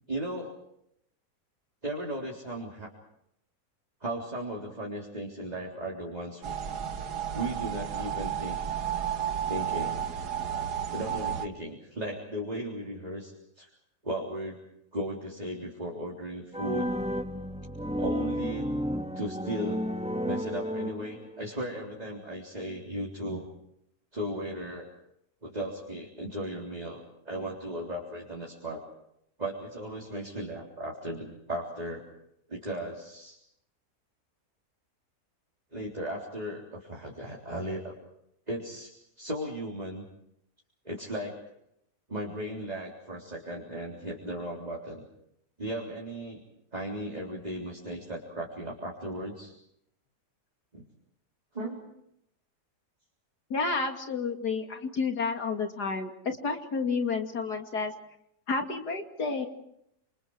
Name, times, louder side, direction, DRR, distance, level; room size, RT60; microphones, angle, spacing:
voice 1, 0.1-0.6 1.8-2.9 4.0-6.5 7.3-8.6 9.5-10.0 10.9-13.7 14.0-14.6 14.9-17.0 18.0-18.7 19.2-19.9 20.2-23.5 24.1-24.9 25.4-28.8 29.4-32.0 32.5-33.4 35.7-38.0 38.5-40.0 40.8-41.4 42.1-45.1 45.6-46.4 46.7-49.5 50.7-50.8 51.5-51.9, right 1 dB, 25° right, -2 dB, 3.9 m, -36 dB
sound 1, 6.4-11.5, right 9 dB, 80° right, 1.9 m, -32 dB
sound 2, 16.5-21.5, equal, 5° right, 1.5 m, -32 dB
voice 2, 53.5-57.9 58.5-59.5, left 4 dB, 85° left, 5 dB, 3.2 m, -30 dB
28.5 x 27.5 x 4.8 m, 0.76 s
omnidirectional pair, 1.7 m